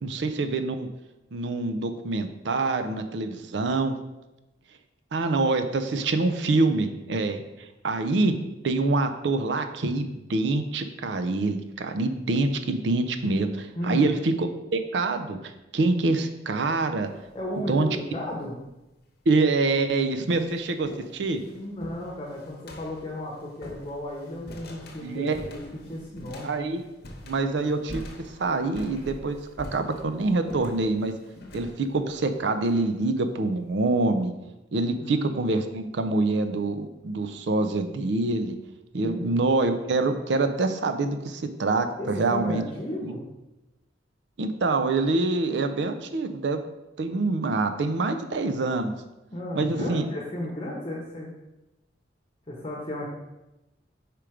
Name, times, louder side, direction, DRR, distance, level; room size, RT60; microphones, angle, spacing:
voice 1, 0.0-0.9 1.3-3.9 5.1-7.4 7.8-8.4 8.6-17.1 17.7-17.9 19.3-21.4 25.0-25.4 26.4-26.8 27.2-28.1 28.4-31.1 31.5-34.3 34.7-38.5 38.9-42.6 43.0-43.1 44.4-46.6 47.0-48.9 49.6-50.0, right 3 dB, 70° right, 8 dB, 0.5 m, -25 dB
voice 2, 13.7-14.1 17.3-18.5 21.5-26.6 35.0-35.2 39.0-39.3 42.0-43.2 49.3-51.3 52.5-53.1, left 1 dB, 30° left, -3 dB, 0.9 m, -34 dB
sound 1, 17.0-17.5 18.4-18.5 19.4-19.5 19.8-33.4, left 1 dB, 60° left, 0.9 m, -44 dB
5.0 x 4.5 x 4.9 m, 0.99 s
head